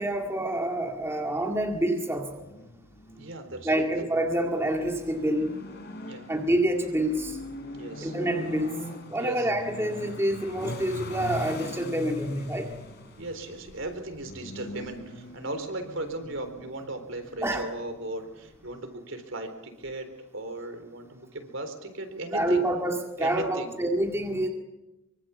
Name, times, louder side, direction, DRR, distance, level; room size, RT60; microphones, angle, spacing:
voice 1, 0.0-2.4 3.6-5.6 6.3-7.4 8.0-8.8 9.1-12.7 17.4-17.7 22.3-24.5, right 1 dB, 10° right, 3 dB, 2.0 m, -27 dB
sound 1, 2.2-18.8, left 1 dB, 50° left, 4.6 m, -42 dB
voice 2, 3.2-3.9 6.1-6.3 7.7-8.1 9.2-9.5 13.2-22.6 23.2-23.7, right 2 dB, 60° right, 7 dB, 4.0 m, -37 dB
25.0 x 24.5 x 7.2 m, 0.97 s
head